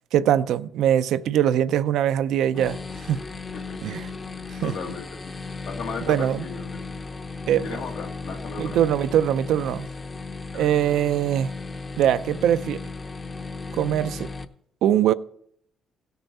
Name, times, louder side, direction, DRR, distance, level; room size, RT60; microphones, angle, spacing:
voice 1, 0.1-2.8 3.1-3.2 3.8-4.1 4.5-4.7 6.1-6.4 7.5-7.7 8.6-9.9 10.5-11.5 12.0-12.8 13.7-14.3 14.8-15.1, right 10 dB, 80° right, 0.4 m, -22 dB
sound 1, 2.5-14.4, left 3 dB, 30° left, 0.7 m, -36 dB
voice 2, 3.5-4.0 4.3-5.4 5.7-6.9 7.6-8.8 10.5-10.7, left 5 dB, 75° left, 1.3 m, -36 dB
16.5 x 6.8 x 4.1 m
cardioid pair, 90°, 0 cm